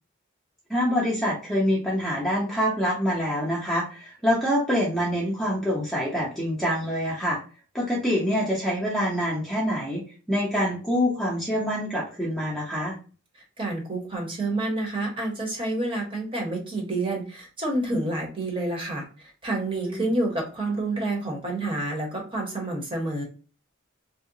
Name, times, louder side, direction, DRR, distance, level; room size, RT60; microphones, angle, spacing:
voice 1, 0.7-7.4 7.7-13.0 19.9-20.0, equal, ahead, -5 dB, 0.7 m, -26 dB
voice 2, 13.6-23.2, right 2 dB, 25° right, 0 dB, 1.0 m, -28 dB
2.7 x 2.0 x 3.8 m, 0.35 s
head